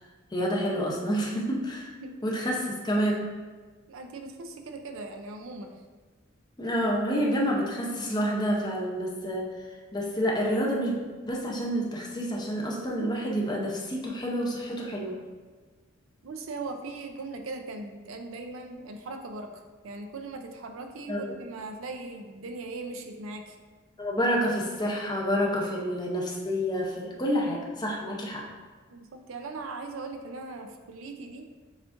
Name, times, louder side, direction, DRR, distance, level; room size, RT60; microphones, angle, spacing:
voice 1, 0.3-1.9 2.2-3.2 6.6-9.5 9.9-10.9 11.3-15.1 21.1-21.3 24.0-28.5, equal, 20° left, -2 dB, 0.6 m, -28 dB
voice 2, 3.9-5.7 16.2-23.6 28.9-31.5, right 3 dB, 80° right, 5 dB, 0.5 m, -39 dB
7.1 x 2.5 x 2.5 m, 1.4 s
head